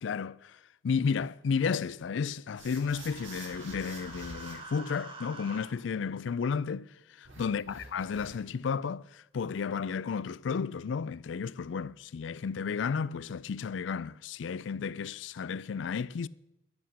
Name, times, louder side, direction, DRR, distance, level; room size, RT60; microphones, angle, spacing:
voice 1, 0.0-16.3, left 6 dB, 70° left, 0.4 m, -33 dB
sound 1, 2.6-4.6 7.2-8.6, right 2 dB, 90° right, 3.0 m, -48 dB
Human voice, 2.9-5.7, right 2 dB, 30° right, 2.0 m, -46 dB
11.0 x 8.0 x 8.6 m
head